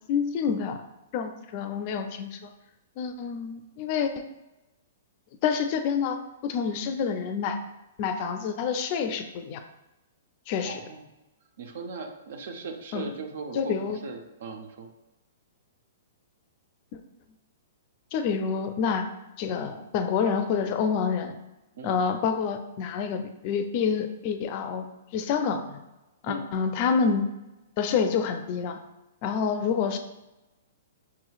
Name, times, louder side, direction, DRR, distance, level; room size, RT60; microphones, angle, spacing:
voice 1, 0.1-0.8 1.1-2.5 3.0-4.2 5.4-7.6 8.0-9.6 10.5-10.8 12.9-13.1 13.5-14.0 18.1-19.1 19.4-21.4 21.8-24.9 25.1-25.8 26.2-27.3 27.8-28.8 29.2-30.0, left 6 dB, 45° left, 8 dB, 0.4 m, -27 dB
voice 2, 10.6-11.0 11.6-14.9 21.7-22.0 26.3-26.4, right 4 dB, 70° right, 5 dB, 0.6 m, -38 dB
5.8 x 3.0 x 2.3 m, 1.0 s
hypercardioid pair, 125°, 0 cm